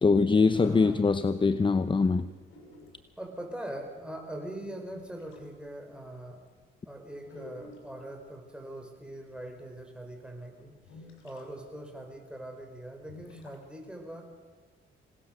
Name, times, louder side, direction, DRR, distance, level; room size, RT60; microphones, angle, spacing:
voice 1, 0.0-2.3, left 4 dB, 25° left, 12 dB, 0.8 m, -23 dB
voice 2, 0.5-1.1 3.2-6.4 6.9-10.8 11.2-14.2, right 1 dB, 5° right, 3 dB, 5.4 m, -42 dB
sound 1, 2.5-3.1 4.3-4.4 4.9-5.5 6.1-6.2 6.5-6.6 7.2-8.0 9.4-9.5 10.1-10.2 10.8-11.5 11.8-11.9 12.1-12.2 13.0-13.6, left 2 dB, 90° left, 5.8 m, -50 dB
26.0 x 19.0 x 6.8 m, 1.4 s
cardioid pair, 90°, 20 cm